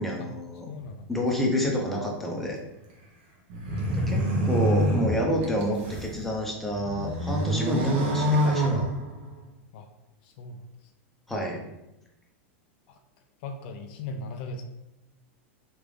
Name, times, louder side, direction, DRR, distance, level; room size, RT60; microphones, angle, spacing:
voice 1, 0.0-0.7 1.1-2.6 3.9-8.8 11.3-11.6, equal, 5° left, -1 dB, 0.6 m, -28 dB
voice 2, 0.7-1.1 3.7-4.4 9.7-9.9 10.2-10.6 11.3-11.5 12.9-13.0 13.4-14.6, left 2 dB, 55° left, 6 dB, 0.4 m, -37 dB
sound 1, 3.5-6.1 6.6-9.4, equal, 60° right, 1.0 m, -26 dB
3.2 x 2.5 x 3.3 m, 0.91 s
supercardioid pair, 135°, 7 cm